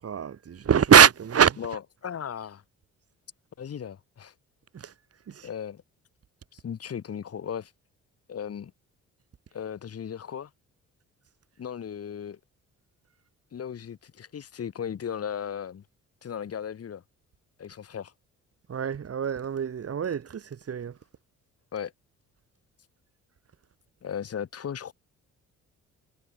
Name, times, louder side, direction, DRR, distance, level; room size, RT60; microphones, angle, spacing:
voice 1, 0.0-1.6 4.7-4.9 5.3-5.5 18.7-21.0, right 7 dB, 50° right, 7.8 m, -22 dB
voice 2, 1.6-2.6 3.6-4.3 5.4-5.8 6.5-7.7 8.3-8.7 9.5-10.5 11.6-12.4 13.5-15.8 16.2-17.0 17.6-18.1 21.7-21.9 24.0-24.9, left 8 dB, 50° left, 4.1 m, -36 dB
cardioid pair, 90°, 30 cm